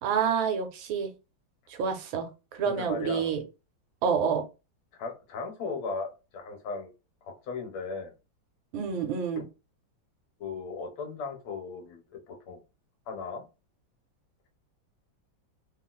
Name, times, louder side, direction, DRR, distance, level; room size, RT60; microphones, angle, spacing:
voice 1, 0.0-1.1 1.7-3.4 4.0-4.5 8.7-9.4, right 6 dB, 80° right, 1.4 m, -28 dB
voice 2, 2.6-3.3 5.0-6.9 7.2-8.1 9.3-9.4 10.4-12.6 13.1-13.4, left 4 dB, 90° left, 1.6 m, -37 dB
3.6 x 2.4 x 2.2 m
omnidirectional pair, 2.1 m